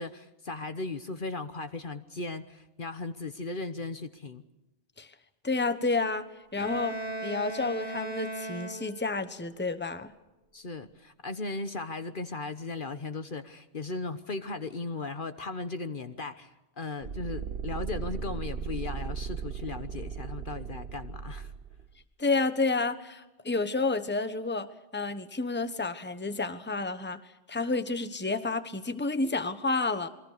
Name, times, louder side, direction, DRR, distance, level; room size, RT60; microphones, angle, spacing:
voice 1, 0.0-4.4 10.5-21.5, left 3 dB, 50° left, 10 dB, 1.2 m, -37 dB
voice 2, 5.4-6.2 6.5-10.1 22.2-24.7 24.9-27.2 27.5-30.1, left 3 dB, 10° left, 10 dB, 1.1 m, -30 dB
Bowed string instrument, 6.6-9.3, right 1 dB, 75° right, 3.0 m, -37 dB
sound 1, 17.0-21.9, right 6 dB, 55° right, 1.2 m, -37 dB
28.0 x 22.5 x 6.7 m, 1.0 s
omnidirectional pair, 1.1 m